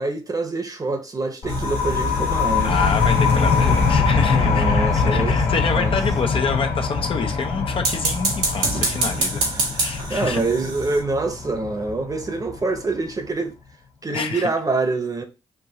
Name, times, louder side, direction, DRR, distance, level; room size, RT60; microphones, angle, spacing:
voice 1, 0.0-2.8 3.7-3.8 4.3-5.4 5.7-5.9 9.6-9.7 10.1-13.5 14.0-15.2, right 3 dB, 35° right, 1.0 m, -25 dB
sound 1, 1.4-12.8, left 5 dB, 80° left, 1.5 m, -22 dB
sound 2, 1.5-4.3 7.7-11.0, right 3 dB, 90° right, 1.4 m, -28 dB
voice 2, 2.6-9.4 9.7-10.4 14.1-14.5, left 5 dB, 55° left, 0.8 m, -27 dB
4.6 x 2.7 x 2.8 m
supercardioid pair, 50°, 11 cm